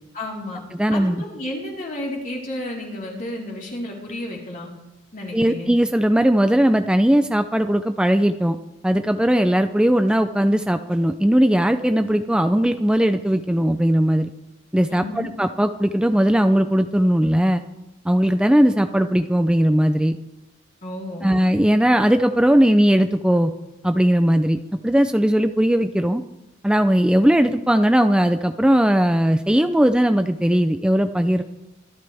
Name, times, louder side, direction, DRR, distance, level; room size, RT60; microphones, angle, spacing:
voice 1, 0.1-0.6 0.9-4.7 5.1-5.7 14.9-15.3 20.8-21.3, left 1 dB, 45° left, -3 dB, 4.2 m, -32 dB
voice 2, 0.7-1.2 5.3-8.6 8.8-14.3 14.7-15.0 15.4-17.6 18.0-20.1 21.2-23.5 23.8-26.2 26.6-31.4, equal, 5° right, 8 dB, 0.4 m, -18 dB
24.0 x 12.5 x 3.5 m, 0.97 s
head